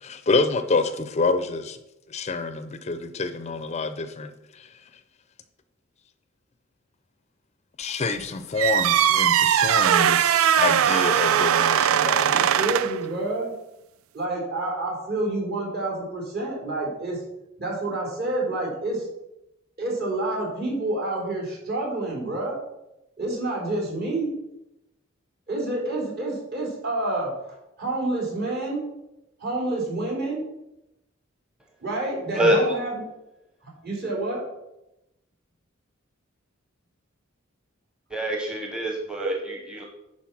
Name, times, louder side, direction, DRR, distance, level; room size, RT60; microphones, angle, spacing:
voice 1, 0.0-1.8 2.1-4.7 7.8-12.4, left 3 dB, 35° left, 10 dB, 0.5 m, -27 dB
sound 1, 8.6-13.0, right 10 dB, 80° right, 0.3 m, -20 dB
voice 2, 12.2-13.5 14.1-17.2 17.6-19.1 19.8-22.6 23.2-24.3 25.5-27.3 27.8-28.8 29.4-30.4 31.8-33.0 33.6-34.4, right 2 dB, 50° right, -3 dB, 3.6 m, -28 dB
voice 3, 38.1-39.8, equal, 5° right, 1 dB, 1.0 m, -25 dB
10.5 x 4.4 x 6.0 m, 0.90 s
head